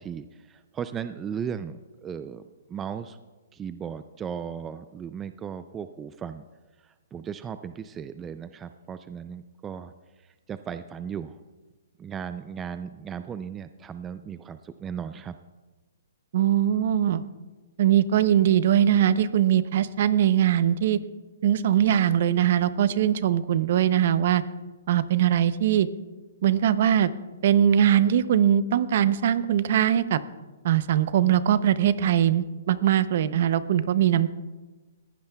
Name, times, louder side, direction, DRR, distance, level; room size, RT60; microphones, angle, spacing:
voice 1, 0.0-2.4 2.7-3.2 3.5-6.4 6.8-9.9 10.2-11.4 12.0-15.4, right 7 dB, 15° right, 11 dB, 0.3 m, -36 dB
voice 2, 16.3-17.2 17.8-21.0 21.4-24.4 24.9-25.9 26.4-27.1 27.4-30.2 30.6-34.3, right 10 dB, 50° right, 15 dB, 0.6 m, -21 dB
20.0 x 15.5 x 2.3 m, 1.2 s
hypercardioid pair, 160°, 0 cm